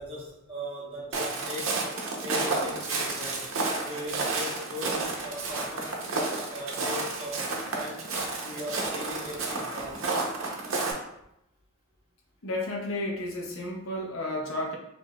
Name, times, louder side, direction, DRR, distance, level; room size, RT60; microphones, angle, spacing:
voice 1, 0.0-1.8 2.2-3.5 3.7-6.0 6.5-8.1 8.4-10.0, left 1 dB, 25° right, -4 dB, 0.9 m, -39 dB
Walk footsteps, 1.1-10.9, right 3 dB, 75° right, 0.7 m, -31 dB
voice 2, 12.4-14.8, left 1 dB, 80° left, -1 dB, 0.8 m, -32 dB
4.6 x 2.6 x 2.2 m, 0.82 s
head